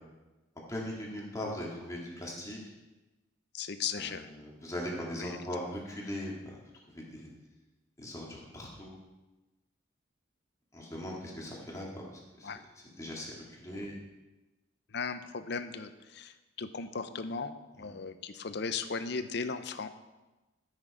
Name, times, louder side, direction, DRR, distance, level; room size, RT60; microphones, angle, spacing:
voice 1, 0.7-2.6 4.0-6.6 6.9-7.3 8.0-9.0 10.7-12.0 12.4-12.5 13.0-13.9 17.8-17.9, left 1 dB, 15° left, -3 dB, 2.1 m, -39 dB
voice 2, 3.5-4.3 5.2-5.4 12.4-12.6 13.7-13.9 14.9-19.9, left 5 dB, 60° left, 11 dB, 0.6 m, -37 dB
13.0 x 6.4 x 4.9 m, 1.1 s
head